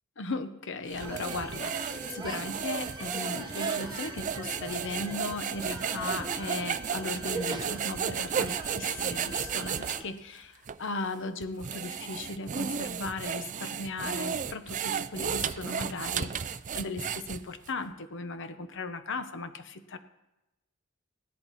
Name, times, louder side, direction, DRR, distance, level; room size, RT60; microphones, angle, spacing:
voice 1, 0.2-20.0, left 3 dB, 60° left, 10 dB, 0.9 m, -37 dB
sound 1, 0.9-10.0 10.7-10.8 11.4-17.7, right 7 dB, 35° right, 0.4 m, -34 dB
sound 2, 1.0-10.1, right 2 dB, 20° right, 1.1 m, -42 dB
sound 3, 1.0-10.0, right 4 dB, 55° right, 1.8 m, -49 dB
16.5 x 11.0 x 4.1 m, 0.94 s
head